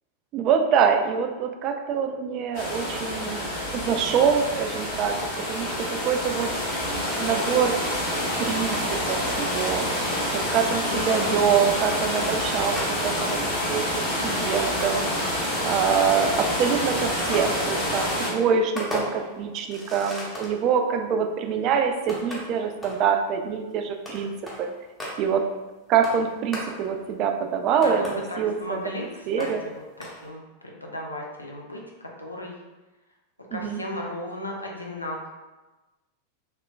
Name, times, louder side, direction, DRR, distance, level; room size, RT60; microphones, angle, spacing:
voice 1, 0.3-3.5 3.7-6.5 7.2-7.8 8.4-9.9 10.3-13.8 14.2-15.1 15.6-24.3 24.6-24.7 25.2-25.5 25.9-28.8 29.3-29.6 33.5-33.8, right 7 dB, 40° right, 5 dB, 0.3 m, -25 dB
sound 1, 2.5-18.3, left 1 dB, 50° left, 1.1 m, -27 dB
voice 2, 10.9-11.7 27.8-32.5 33.5-35.3, left 1 dB, 85° left, -1 dB, 0.5 m, -35 dB
sound 2, 11.1-11.7 12.4-13.3 13.7-15.5 15.8-20.6 21.2-21.3 22.0-23.1 23.7-23.8 24.1-25.4 26.0-27.1 27.5-28.5 28.8-28.9 29.4-29.7 30.0-30.3, equal, 10° left, 0.8 m, -37 dB
3.2 x 2.8 x 2.3 m, 1.1 s
figure-of-eight pair, 90°, 0 cm